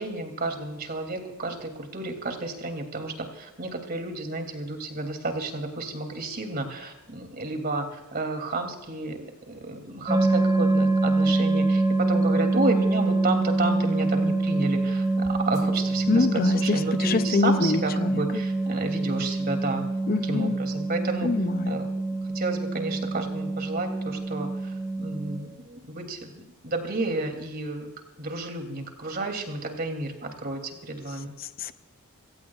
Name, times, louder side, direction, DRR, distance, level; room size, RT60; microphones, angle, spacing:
voice 1, 0.0-19.8 20.2-21.3 21.7-21.9 22.3-27.9 28.2-31.3, right 2 dB, 45° right, 5 dB, 2.7 m, -31 dB
sound 1, 10.1-25.4, right 2 dB, 15° right, 1.8 m, -25 dB
voice 2, 16.1-18.2 20.1-20.6 21.2-21.8 31.4-31.7, left 3 dB, 40° left, 12 dB, 0.5 m, -25 dB
25.0 x 17.0 x 2.4 m, 1.1 s
head